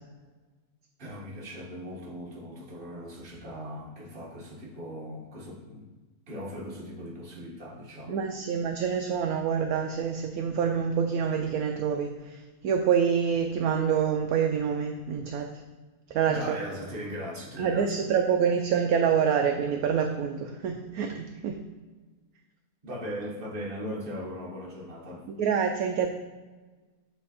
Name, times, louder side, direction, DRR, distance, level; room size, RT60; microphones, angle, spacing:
voice 1, 1.0-5.9 6.3-8.2 16.3-18.1 22.8-25.3, equal, 35° right, -3 dB, 1.3 m, -39 dB
voice 2, 8.1-15.5 16.1-16.4 17.6-21.6 25.3-26.1, right 7 dB, 70° right, 3 dB, 0.9 m, -26 dB
7.3 x 3.4 x 4.2 m, 1.3 s
omnidirectional pair, 1.8 m